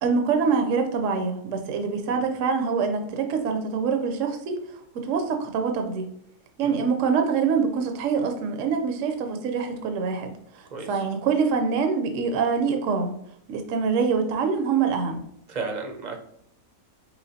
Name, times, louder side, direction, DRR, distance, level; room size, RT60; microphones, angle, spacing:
voice 1, 0.0-6.1 6.6-13.1 13.5-15.2, right 5 dB, 70° right, 5 dB, 0.9 m, -25 dB
voice 2, 15.5-16.2, right 4 dB, 45° right, 4 dB, 0.6 m, -33 dB
5.0 x 3.0 x 2.7 m, 0.72 s
omnidirectional pair, 1.5 m